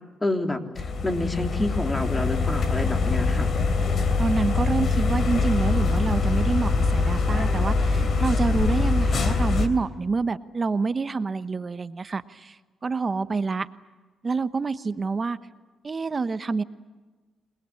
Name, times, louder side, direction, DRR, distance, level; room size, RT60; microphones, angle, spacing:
voice 1, 0.2-3.5, left 2 dB, 15° left, 5 dB, 3.2 m, -28 dB
sound 1, 0.8-9.7, left 4 dB, 55° left, 3.1 m, -23 dB
voice 2, 4.2-12.6 12.8-13.7 14.2-15.4 15.8-16.6, right 4 dB, 30° right, 12 dB, 1.0 m, -27 dB
28.0 x 20.5 x 8.5 m, 1.3 s
cardioid pair, 90°, 0 cm